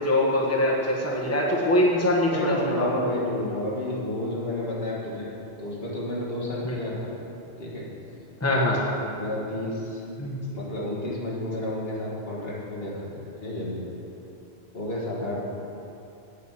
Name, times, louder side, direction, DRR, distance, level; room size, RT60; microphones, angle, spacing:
voice 1, 0.0-3.0 6.6-6.8 8.4-8.8 10.2-10.4, left 1 dB, 15° left, -4 dB, 1.3 m, -23 dB
voice 2, 2.3-5.3 5.6-7.2 7.6-7.8 8.6-10.0 10.5-13.8 14.7-15.4, left 1 dB, 70° left, -5 dB, 2.2 m, -31 dB
8.2 x 6.6 x 8.3 m, 2.8 s
omnidirectional pair, 1.1 m